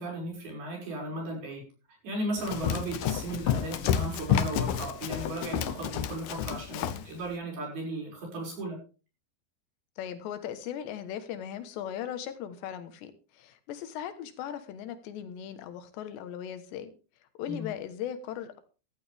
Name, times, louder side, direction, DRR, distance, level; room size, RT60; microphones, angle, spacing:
voice 1, 0.0-1.7 2.0-8.8 17.5-17.7, right 1 dB, 60° right, -1 dB, 7.9 m, -36 dB
Run, 2.4-7.1, left 9 dB, 70° left, 2.6 m, -30 dB
voice 2, 6.7-7.0 10.0-16.9 17.4-18.6, left 10 dB, 90° left, 10 dB, 3.6 m, -38 dB
14.5 x 14.0 x 3.5 m, 0.35 s
omnidirectional pair, 4.8 m